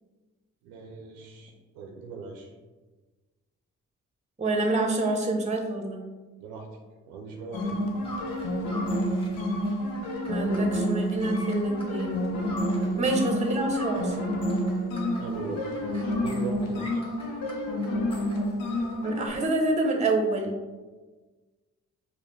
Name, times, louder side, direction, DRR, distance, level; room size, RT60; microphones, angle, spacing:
voice 1, 0.6-2.5 6.4-6.7 7.1-7.8 8.6-8.7 12.8-13.1 15.2-17.1, right 4 dB, 90° right, 0 dB, 0.5 m, -39 dB
voice 2, 4.4-6.1 10.3-12.2 13.0-14.2 19.0-20.5, right 2 dB, 20° right, 2 dB, 0.8 m, -27 dB
sound 1, 7.5-19.3, equal, 80° left, 0.6 m, -29 dB
sound 2, 8.0-13.1 13.4-18.9, left 1 dB, 15° left, 1.2 m, -45 dB
4.7 x 2.1 x 3.3 m, 1.3 s
hypercardioid pair, 40°, 35 cm